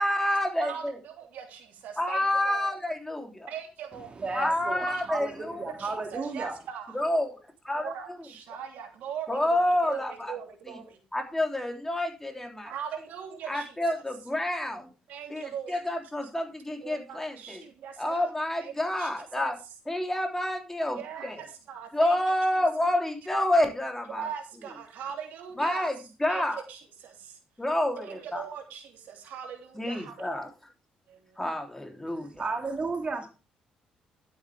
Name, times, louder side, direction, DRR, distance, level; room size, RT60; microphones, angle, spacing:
voice 1, 0.0-1.0 2.0-3.5 4.3-5.6 6.9-7.3 7.7-7.9 9.3-10.3 10.7-10.8 11.1-12.7 13.5-14.9 15.3-17.6 18.0-19.5 19.9-21.3 21.9-24.3 25.6-25.9 26.2-26.6 27.6-28.4 29.8-30.5 31.4-32.3, left 1 dB, 10° left, 3 dB, 3.2 m, -28 dB
voice 2, 0.6-2.8 3.5-4.2 4.9-5.2 5.8-6.9 7.7-11.0 12.6-14.0 15.1-15.8 16.8-18.3 18.6-18.7 19.0-19.1 19.3-19.5 21.0-22.2 22.5-22.7 24.1-27.4 27.9-30.5 31.1-31.4, right 8 dB, 75° right, 3 dB, 2.9 m, -41 dB
voice 3, 4.2-6.5 32.1-33.3, right 3 dB, 40° right, 4 dB, 2.1 m, -33 dB
11.5 x 8.5 x 3.5 m, 0.32 s
supercardioid pair, 70°, 3 cm